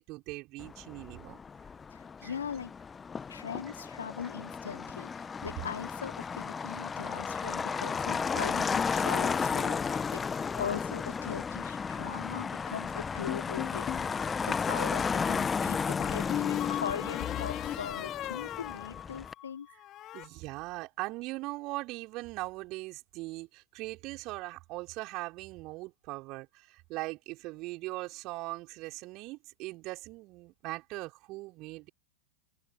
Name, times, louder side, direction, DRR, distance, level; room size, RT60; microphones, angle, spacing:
voice 1, 0.0-1.4 2.2-2.3 3.8-3.9 20.1-31.9, right 21 dB, 40° right, 5.3 m, -40 dB
Motor vehicle (road), 0.6-19.3, left 5 dB, 15° left, 1.2 m, -34 dB
voice 2, 1.9-2.7 3.3-13.9 14.2-19.7, left 7 dB, 70° left, 4.0 m, -40 dB
sound 1, 13.3-14.1 16.0-19.5 19.8-20.3, left 13 dB, 35° left, 5.6 m, -36 dB
figure-of-eight pair, 90°, 0 cm